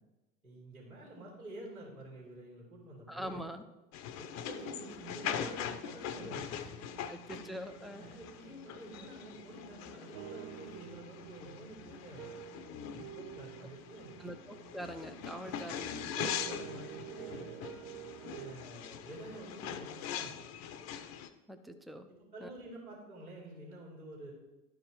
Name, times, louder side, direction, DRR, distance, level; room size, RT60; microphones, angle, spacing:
voice 1, 0.4-3.4 4.2-7.0 7.3-7.4 8.0-12.4 12.9-14.2 15.4-15.9 16.2-17.7 18.3-20.4 22.1-24.3, right 1 dB, 85° right, -5 dB, 3.0 m, -49 dB
voice 2, 3.1-3.6 7.1-8.0 14.2-16.4 21.5-22.1 22.4-22.5, equal, ahead, 8 dB, 0.5 m, -44 dB
sound 1, 3.9-21.3, left 9 dB, 40° left, 0.7 m, -42 dB
sound 2, 4.4-18.5, right 11 dB, 40° right, 0.7 m, -50 dB
12.0 x 4.9 x 4.7 m, 1.1 s
figure-of-eight pair, 80°, 42 cm